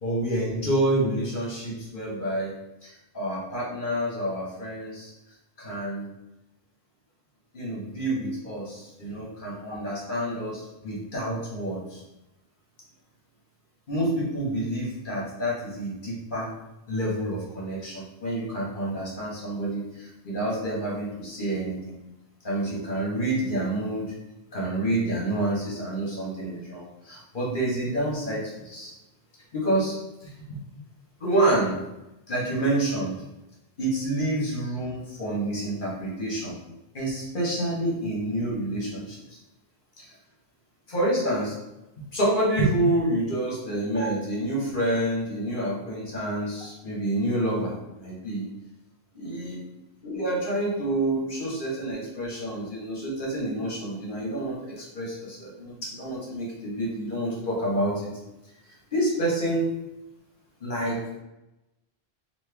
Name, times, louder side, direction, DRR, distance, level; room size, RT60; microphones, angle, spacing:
voice 1, 0.0-2.6 2.8-5.1 5.6-6.1 7.5-12.0 13.9-16.5 16.9-21.9 22.4-24.1 24.5-28.9 29.5-29.9 30.2-30.6 31.2-31.8 32.3-33.1 33.8-36.5 36.9-39.4 40.0-40.1 40.9-41.5 42.1-48.5 49.1-49.6 50.0-58.1 58.6-59.7 60.6-61.0, right 1 dB, 55° left, -5 dB, 1.5 m, -28 dB
4.3 x 2.9 x 3.4 m, 0.96 s
omnidirectional pair, 1.1 m